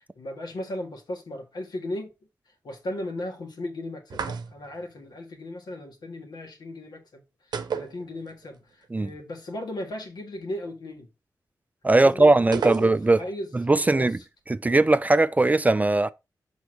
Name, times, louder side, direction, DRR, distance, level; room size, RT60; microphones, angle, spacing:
voice 1, 0.0-2.1 2.6-7.2 7.5-11.1 12.0-14.2, left 1 dB, 75° left, 1.7 m, -36 dB
sound 1, 4.1-4.8 7.5-8.6 8.8-8.9 12.5-13.3, right 6 dB, 80° right, 0.7 m, -32 dB
voice 2, 11.8-13.2 13.5-14.2 14.5-16.1, right 2 dB, 20° right, 0.3 m, -19 dB
6.1 x 3.6 x 4.8 m
cardioid pair, 75°, 7 cm